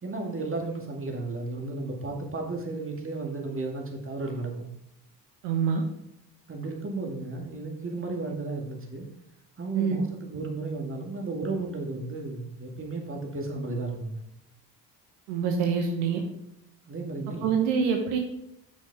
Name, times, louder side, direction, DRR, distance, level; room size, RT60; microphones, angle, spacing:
voice 1, 0.0-4.7 6.5-9.1 9.6-14.2 16.8-17.5, right 3 dB, 25° right, 1 dB, 2.2 m, -34 dB
voice 2, 5.4-5.8 9.7-10.0 15.3-16.2 17.4-18.2, right 6 dB, 75° right, 3 dB, 1.2 m, -25 dB
9.0 x 6.2 x 3.5 m, 0.80 s
hypercardioid pair, 55°, 49 cm